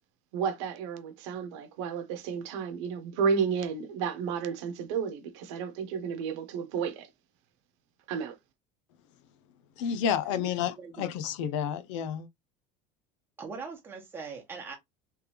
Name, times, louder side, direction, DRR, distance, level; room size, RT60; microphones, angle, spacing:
voice 1, 0.3-7.1 8.1-8.4, right 6 dB, 75° right, 0.9 m, -32 dB
voice 2, 9.8-12.3, left 8 dB, 85° left, 0.7 m, -30 dB
voice 3, 10.8-11.1 13.4-14.7, right 5 dB, 15° right, 1.3 m, -41 dB
3.4 x 3.3 x 3.0 m
cardioid pair, 165°, 15 cm